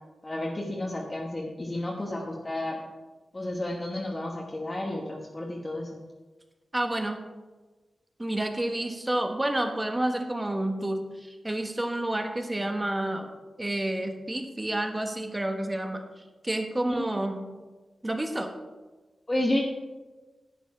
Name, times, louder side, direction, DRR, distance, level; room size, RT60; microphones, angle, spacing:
voice 1, 0.2-2.8 3.3-6.0 16.9-17.1 19.3-19.6, left 1 dB, 25° left, -1 dB, 1.3 m, -31 dB
voice 2, 6.7-7.2 8.2-13.3 13.6-17.5 18.0-18.5, right 1 dB, 15° right, 5 dB, 1.3 m, -29 dB
10.5 x 9.1 x 4.8 m, 1.2 s
wide cardioid pair, 100°, 0 cm